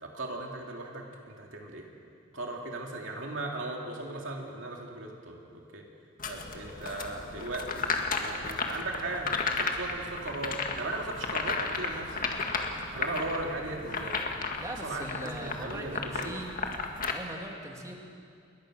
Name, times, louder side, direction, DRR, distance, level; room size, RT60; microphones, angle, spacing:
voice 1, 0.0-1.9 2.3-5.9 6.3-12.2 12.9-14.2 14.6-16.4, right 2 dB, 70° right, 0 dB, 2.9 m, -37 dB
sound 1, 6.2-17.1, left 4 dB, 45° left, 1.9 m, -34 dB
voice 2, 14.6-16.5 17.1-17.9, right 1 dB, 15° right, 1 dB, 2.6 m, -40 dB
28.5 x 22.0 x 6.4 m, 2.4 s
head